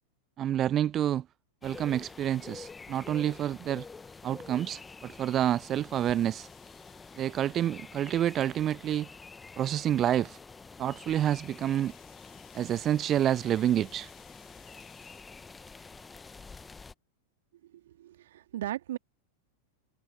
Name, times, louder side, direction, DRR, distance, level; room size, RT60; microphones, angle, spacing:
voice 1, 0.4-1.2 1.6-3.9 4.2-6.5 7.2-9.1 9.6-10.4 10.8-11.9 12.5-14.1, right 11 dB, 30° right, 0.3 m, -28 dB
sound 1, 1.6-16.9, left 4 dB, 15° left, 1.3 m, -48 dB
Rattle (instrument), 6.0-9.0 9.5-15.2, left 35 dB, 45° left, 5.9 m, -62 dB
voice 2, 17.6-19.0, right 13 dB, 60° right, 2.4 m, -37 dB
figure-of-eight pair, 90°, 0 cm